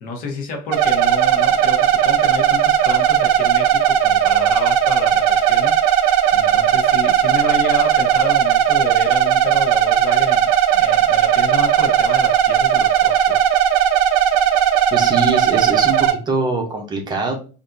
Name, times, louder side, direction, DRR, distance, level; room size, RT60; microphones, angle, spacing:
voice 1, 0.0-5.8 6.3-13.5, left 3 dB, 50° left, 3 dB, 0.9 m, -30 dB
sound 1, 0.7-16.1, right 9 dB, 80° right, 0.5 m, -16 dB
voice 2, 14.9-17.3, right 3 dB, 25° right, 2 dB, 0.7 m, -23 dB
3.4 x 2.6 x 2.5 m, 0.36 s
cardioid pair, 160°, 18 cm